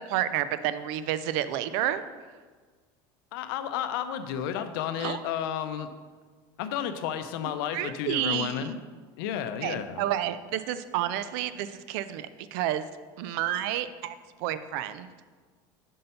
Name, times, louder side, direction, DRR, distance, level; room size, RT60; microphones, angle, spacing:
voice 1, 0.0-2.3 5.0-5.3 7.4-8.7 9.6-12.9 13.2-15.1, right 12 dB, 70° right, 13 dB, 0.4 m, -30 dB
voice 2, 3.3-5.9 6.6-8.8 9.2-10.0, left 9 dB, 85° left, 9 dB, 0.6 m, -32 dB
5.4 x 5.3 x 5.6 m, 1.5 s
supercardioid pair, 130°, 12 cm